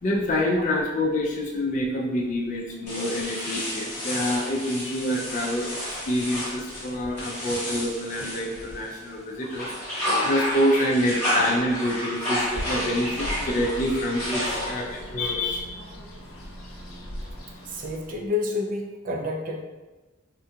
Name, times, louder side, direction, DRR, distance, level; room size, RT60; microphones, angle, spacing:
voice 1, 0.0-9.7 10.2-15.7, left 1 dB, 40° left, -2 dB, 0.4 m, -26 dB
sound 1, 2.9-9.0 9.4-15.0, left 1 dB, 10° left, 1.0 m, -31 dB
Bird, 12.4-18.3, equal, 85° left, 0.7 m, -39 dB
voice 2, 17.7-19.6, left 3 dB, 40° right, 1 dB, 0.4 m, -29 dB
3.6 x 2.2 x 2.7 m, 1.2 s
head